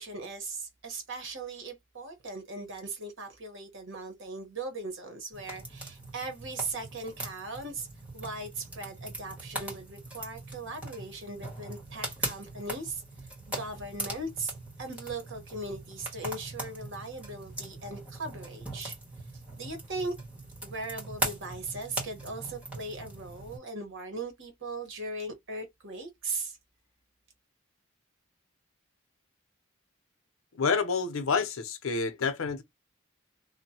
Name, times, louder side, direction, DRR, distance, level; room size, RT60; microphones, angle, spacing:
voice 1, 0.0-7.9 8.1-13.0 13.5-14.5 14.8-19.0 19.6-20.1 20.6-26.6, right 2 dB, 65° right, 1.1 m, -38 dB
sound 1, 5.3-23.6, right 1 dB, 5° right, 1.5 m, -40 dB
voice 2, 30.5-32.6, left 5 dB, 75° left, 0.6 m, -28 dB
3.0 x 2.2 x 2.8 m
head